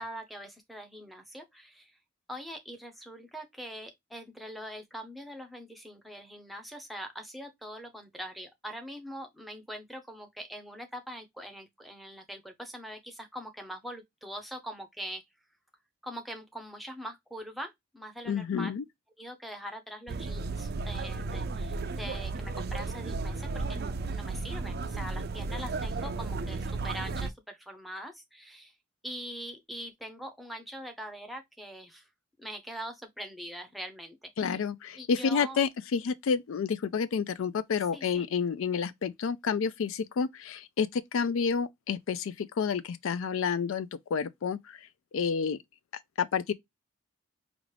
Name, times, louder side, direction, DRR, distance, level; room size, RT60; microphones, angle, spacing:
voice 1, 0.0-2.0 2.3-15.2 16.0-18.7 19.2-28.7 29.0-32.1 32.4-34.6 35.0-35.6 37.9-38.3, equal, ahead, 0.6 m, -43 dB
voice 2, 18.3-18.8 34.4-44.8 45.1-45.6 46.2-46.5, left 6 dB, 70° left, 0.4 m, -29 dB
sound 1, 20.1-27.3, right 3 dB, 45° right, 0.4 m, -34 dB
5.0 x 2.4 x 3.2 m
head